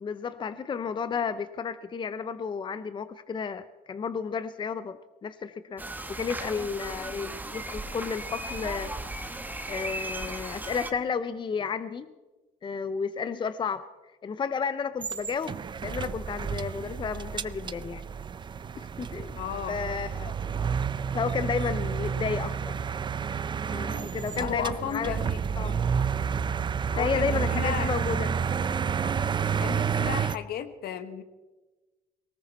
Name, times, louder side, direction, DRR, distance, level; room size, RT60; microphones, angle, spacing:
voice 1, 0.0-5.8 6.1-8.9 9.7-12.1 12.6-13.8 14.2-15.6 15.8-18.0 18.8-19.4 19.7-20.7 21.1-22.7 23.7-25.3 25.6-25.8 26.9-28.3, left 6 dB, 30° left, 13 dB, 0.6 m, -32 dB
sound 1, 5.8-10.9, right 2 dB, 10° right, 1.1 m, -36 dB
sound 2, 15.0-30.4, right 6 dB, 25° right, 0.5 m, -30 dB
voice 2, 19.4-19.8 24.3-25.4 26.9-27.9 29.0-29.2 29.6-31.2, left 9 dB, 70° left, 10 dB, 1.3 m, -34 dB
19.0 x 18.0 x 4.2 m, 1.2 s
cardioid pair, 110°, 17 cm